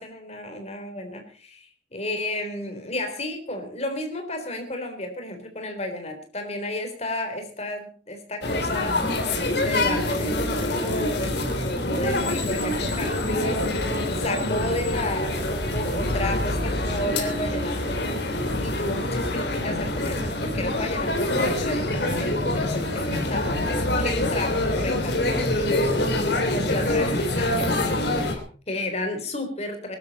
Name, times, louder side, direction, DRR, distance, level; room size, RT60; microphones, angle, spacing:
voice 1, 0.0-30.0, left 1 dB, 35° left, 6 dB, 3.7 m, -32 dB
sound 1, 8.4-28.3, left 1 dB, 65° left, 3.4 m, -25 dB
22.0 x 12.5 x 4.2 m, 0.40 s
head